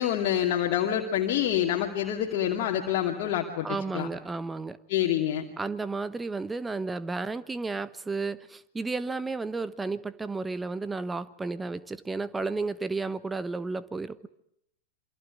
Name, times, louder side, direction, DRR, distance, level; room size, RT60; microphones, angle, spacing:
voice 1, 0.0-4.1 4.9-5.4, left 10 dB, 45° left, 0 dB, 2.7 m, -27 dB
voice 2, 3.6-4.8 5.6-14.3, right 3 dB, 10° right, 16 dB, 1.1 m, -32 dB
28.0 x 24.5 x 8.3 m, 0.75 s
figure-of-eight pair, 90°, 0 cm